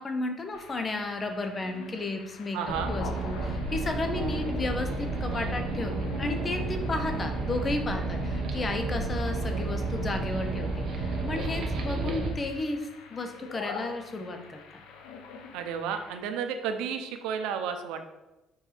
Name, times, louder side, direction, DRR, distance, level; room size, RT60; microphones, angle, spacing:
voice 1, 0.0-2.6 2.9-14.8, left 2 dB, 25° left, 6 dB, 0.7 m, -33 dB
sound 1, 0.5-16.2, left 5 dB, 90° left, 0.8 m, -45 dB
voice 2, 2.5-2.9 15.5-18.1, right 7 dB, 90° right, 7 dB, 0.7 m, -32 dB
sound 2, 2.7-12.3, right 2 dB, 50° right, 1.0 m, -31 dB
4.6 x 4.4 x 5.0 m, 1.0 s
cardioid pair, 140°, 0 cm